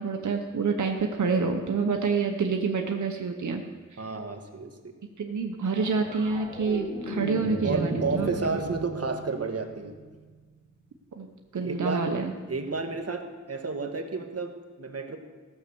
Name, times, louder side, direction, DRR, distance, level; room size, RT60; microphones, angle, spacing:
voice 1, 0.0-3.6 5.2-8.3 11.2-12.3, right 4 dB, 90° right, 4 dB, 0.9 m, -27 dB
voice 2, 4.0-4.9 7.6-9.9 11.5-12.1 12.5-15.2, right 4 dB, 55° right, 4 dB, 1.3 m, -31 dB
sound 1, 5.8-10.3 12.7-12.8, right 1 dB, 20° left, 3.4 m, -35 dB
15.0 x 6.5 x 6.9 m, 1.4 s
wide cardioid pair, 105°, 29 cm